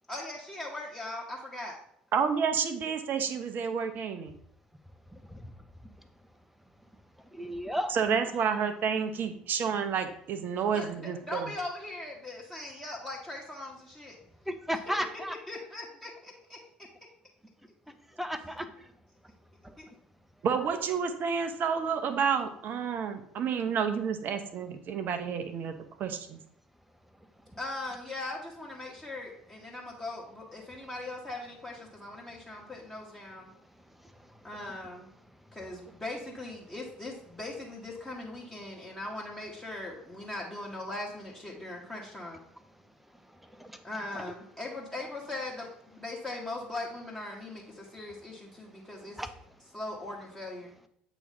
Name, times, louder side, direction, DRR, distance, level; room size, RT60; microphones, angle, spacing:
voice 1, 0.1-1.8 10.7-14.2 15.5-16.6 19.8-19.9 27.6-33.5 34.4-35.1 35.5-42.4 43.8-45.7 45.9-49.2 49.7-50.7, left 2 dB, 15° left, -4 dB, 1.3 m, -40 dB
voice 2, 2.1-4.3 7.9-11.4 20.4-26.4, right 6 dB, 45° right, 8 dB, 0.7 m, -30 dB
voice 3, 7.4-7.9 14.5-15.3 18.2-18.7 20.5-20.8 44.1-44.2 49.2-49.3, equal, 5° right, 10 dB, 0.7 m, -33 dB
8.1 x 3.0 x 5.4 m, 0.69 s
figure-of-eight pair, 60°, 5 cm